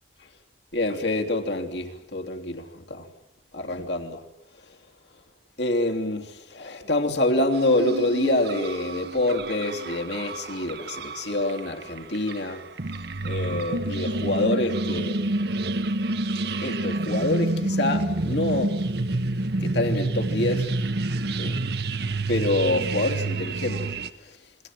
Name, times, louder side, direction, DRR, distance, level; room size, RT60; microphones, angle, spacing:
voice 1, 0.7-3.1 3.5-4.2 5.6-12.6 13.2-15.5 16.6-18.7 19.6-20.7 21.4-21.6 22.3-23.9, left 2 dB, 75° left, 3.2 m, -26 dB
sound 1, 7.5-24.1, right 2 dB, 60° right, 1.1 m, -28 dB
29.0 x 22.5 x 7.7 m
head